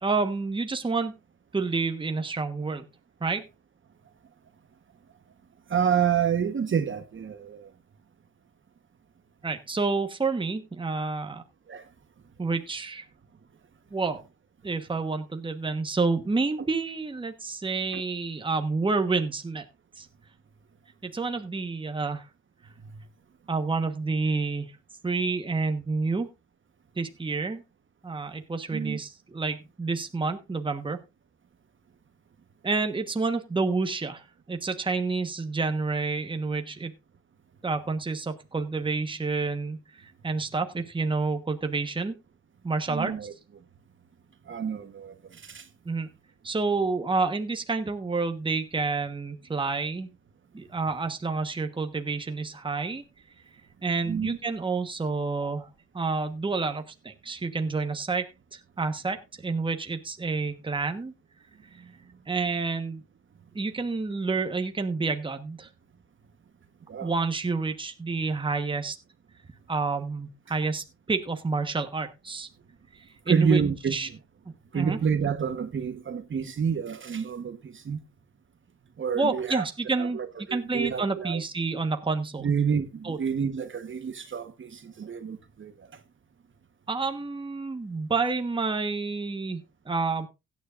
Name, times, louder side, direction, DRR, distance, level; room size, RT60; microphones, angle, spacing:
voice 1, 0.0-1.1 1.5-2.9 3.2-3.4 9.4-11.4 12.4-13.0 13.9-14.2 14.6-19.6 20.0-20.1 21.0-22.3 23.5-24.8 25.0-26.3 27.0-27.6 28.0-31.0 32.6-36.9 37.6-42.2 42.6-43.1 45.8-46.1 46.4-50.1 50.5-53.0 53.8-55.7 55.9-61.1 62.3-63.0 63.5-65.7 67.0-69.0 69.7-72.5 72.9-73.6 73.9-74.1 74.7-75.0 79.1-80.2 80.5-82.5 83.0-83.2 86.9-90.3, right 4 dB, 15° right, 1.3 m, -29 dB
voice 2, 5.7-7.7 11.7-11.9 17.9-18.0 22.8-23.0 28.7-29.0 42.9-43.3 44.4-45.7 54.0-54.4 66.9-67.2 73.3-73.9 74.7-78.0 79.0-79.6 80.0-81.4 82.4-86.0, right 7 dB, 40° right, 1.3 m, -28 dB
16.5 x 9.6 x 2.5 m
cardioid pair, 90°, 30 cm